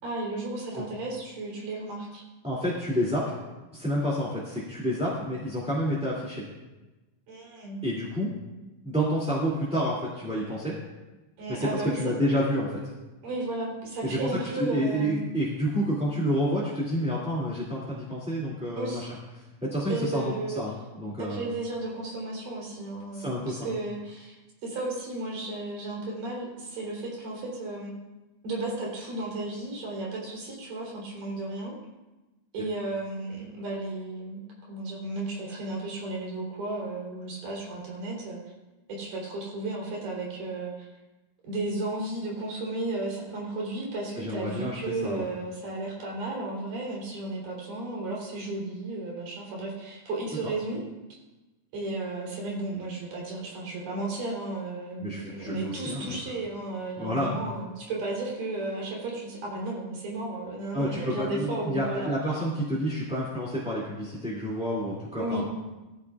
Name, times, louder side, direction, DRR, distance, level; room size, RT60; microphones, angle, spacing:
voice 1, 0.0-2.2 7.3-7.8 11.4-12.1 13.2-15.2 18.8-19.1 19.9-20.6 21.2-24.4 24.6-27.9 28.4-31.7 32.5-38.4 38.9-40.9 41.4-50.8 51.7-62.1 65.2-65.5, right 2 dB, 80° right, -3 dB, 5.1 m, -34 dB
voice 2, 2.4-3.4 3.7-6.4 7.8-8.3 8.8-10.7 11.5-12.8 14.0-14.3 14.5-19.1 19.6-21.5 23.1-23.6 44.2-45.3 50.4-50.5 55.0-56.2 57.0-57.4 60.7-65.4, equal, ahead, -8 dB, 1.6 m, -29 dB
17.5 x 14.0 x 2.4 m, 1.1 s
omnidirectional pair, 3.8 m